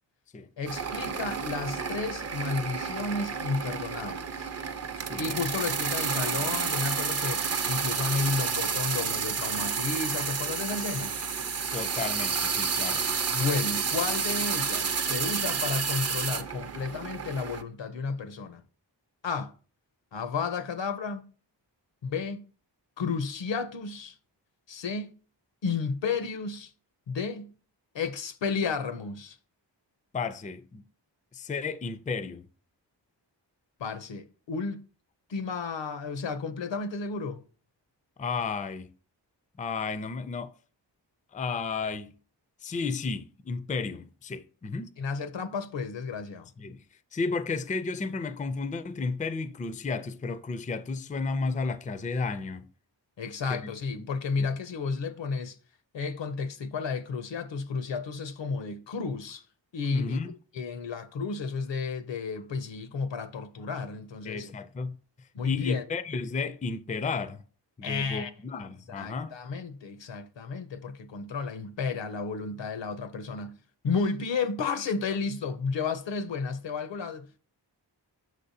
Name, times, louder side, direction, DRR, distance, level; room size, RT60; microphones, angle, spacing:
voice 1, 0.6-4.5 5.2-11.1 13.3-18.6 19.2-19.5 20.1-21.2 22.0-22.4 23.0-24.1 24.7-25.1 25.6-26.7 27.1-27.5 27.9-29.4 33.8-34.8 35.3-37.4 45.0-46.5 53.2-55.6 55.9-59.4 59.7-64.5 65.3-65.8 67.8-68.3 68.9-73.6 73.8-77.4, left 4 dB, 75° left, 0.7 m, -32 dB
sound 1, 0.6-17.6, right 5 dB, 35° right, 0.5 m, -30 dB
voice 2, 5.0-5.4 11.7-13.0 30.1-30.8 31.3-32.4 38.2-38.9 39.6-40.5 41.3-42.1 42.6-44.9 46.6-46.8 47.1-52.7 53.5-54.1 54.4-54.5 59.9-60.3 64.2-65.0 65.4-67.4 67.8-69.3, left 4 dB, 20° left, 0.4 m, -33 dB
6.5 x 6.2 x 2.7 m
wide cardioid pair, 95°, 44 cm